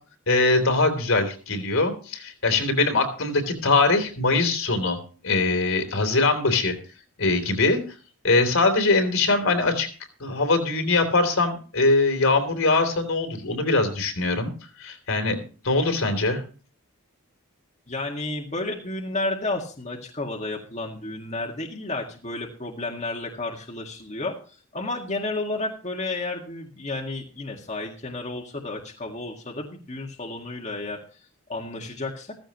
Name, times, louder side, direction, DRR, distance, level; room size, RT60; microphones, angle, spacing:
voice 1, 0.3-5.0 5.2-6.8 7.2-7.8 8.2-9.9 10.2-14.5 14.8-15.4 15.6-16.4, left 3 dB, 70° left, 6 dB, 3.5 m, -22 dB
voice 2, 17.9-24.4 24.7-31.0 31.5-32.3, left 2 dB, 30° left, 0 dB, 1.9 m, -32 dB
15.0 x 15.0 x 3.1 m, 0.38 s
head